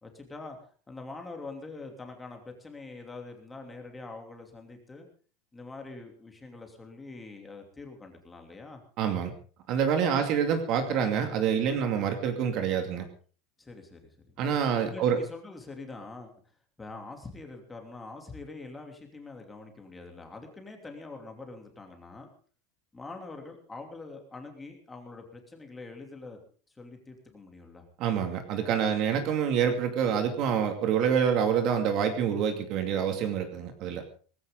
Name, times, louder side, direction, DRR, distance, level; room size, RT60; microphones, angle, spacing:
voice 1, 0.0-5.1 5.5-8.8 10.1-10.3 13.6-14.3 14.9-22.3 22.9-26.4 26.7-27.8, left 3 dB, 10° left, 3 dB, 2.9 m, -44 dB
voice 2, 9.0-9.3 9.7-13.1 14.4-15.2 28.0-34.0, right 7 dB, 45° right, 6 dB, 2.4 m, -27 dB
18.5 x 16.0 x 3.9 m, 0.40 s
supercardioid pair, 160°, 0 cm